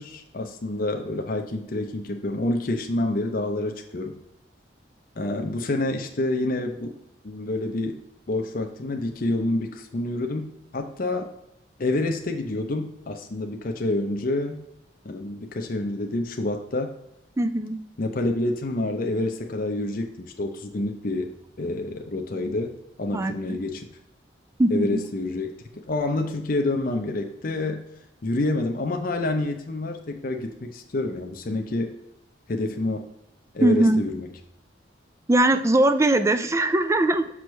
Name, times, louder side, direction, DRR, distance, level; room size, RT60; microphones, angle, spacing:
voice 1, 0.0-4.2 5.2-6.9 7.2-8.0 8.3-11.3 11.8-14.6 15.0-16.9 18.0-22.7 23.0-23.9 24.7-25.5 25.9-27.8 28.2-31.9 32.5-33.1 33.5-34.4, left 2 dB, 50° left, 4 dB, 0.6 m, -28 dB
voice 2, 17.4-17.8 23.1-23.6 24.6-25.0 33.6-34.0 35.3-37.3, right 1 dB, 15° right, 10 dB, 0.3 m, -20 dB
6.1 x 5.8 x 3.1 m, 0.87 s
head